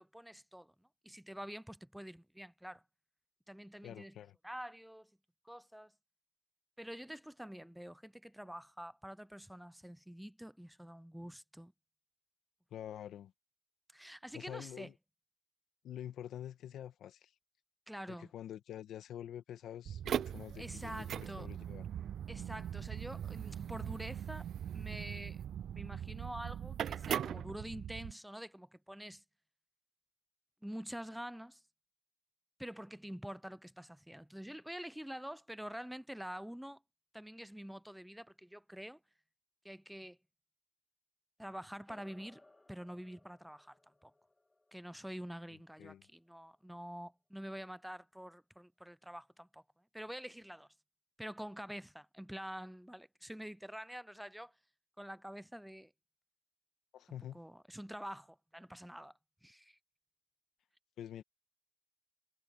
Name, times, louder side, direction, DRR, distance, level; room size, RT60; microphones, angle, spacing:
voice 1, 0.0-2.8 3.5-4.2 4.4-5.1 5.4-5.9 6.8-11.7 13.9-14.9 17.9-18.3 20.6-21.5 22.3-24.5 24.7-25.5 25.7-29.2 30.6-31.6 32.6-36.8 37.1-39.0 39.6-40.2 41.4-42.4 42.7-43.8 44.0-44.1 44.7-50.7 51.2-54.5 55.0-55.9 57.3-59.8, equal, 5° right, 0.5 m, -47 dB
voice 2, 3.8-4.4 12.7-13.3 14.3-14.9 15.8-17.3 18.1-21.9 45.8-46.1 56.9-57.4 61.0-61.2, left 10 dB, 75° left, 1.4 m, -47 dB
sound 1, 19.8-28.1, right 9 dB, 65° right, 0.4 m, -40 dB
sound 2, 41.8-46.6, left 2 dB, 15° left, 1.7 m, -65 dB
cardioid pair, 90°, 0 cm